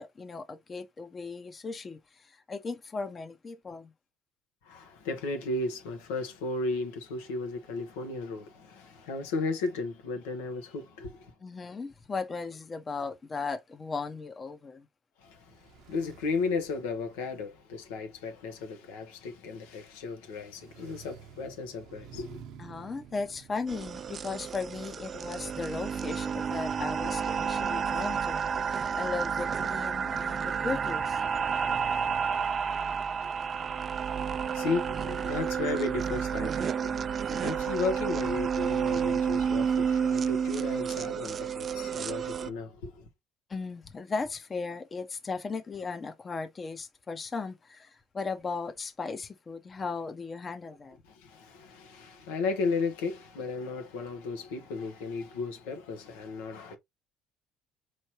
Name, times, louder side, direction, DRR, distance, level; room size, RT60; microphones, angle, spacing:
voice 1, 0.0-3.9 11.4-14.9 22.6-31.2 37.3-37.4 43.5-51.0, left 4 dB, 30° left, 0.7 m, -37 dB
voice 2, 4.6-11.3 15.2-22.4 33.1-43.0 51.0-56.8, left 3 dB, 90° left, 1.0 m, -35 dB
sound 1, 15.2-32.5, right 7 dB, 70° right, 0.8 m, -52 dB
sound 2, 23.7-42.5, right 7 dB, 40° right, 0.3 m, -30 dB
4.5 x 3.1 x 2.9 m
supercardioid pair, 85°, 0 cm